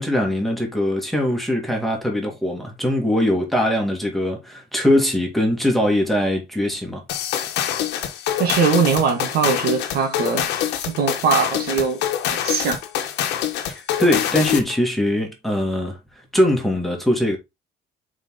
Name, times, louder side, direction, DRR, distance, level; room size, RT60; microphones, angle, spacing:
voice 1, 0.0-7.0 14.0-16.0 16.3-17.4, left 1 dB, ahead, 2.4 m, -21 dB
sound 1, 7.1-14.8, left 11 dB, 85° left, 1.2 m, -25 dB
voice 2, 8.4-10.5 10.9-12.0 12.3-12.8, right 5 dB, 65° right, 2.2 m, -21 dB
5.1 x 4.9 x 3.8 m
cardioid pair, 110°, 17 cm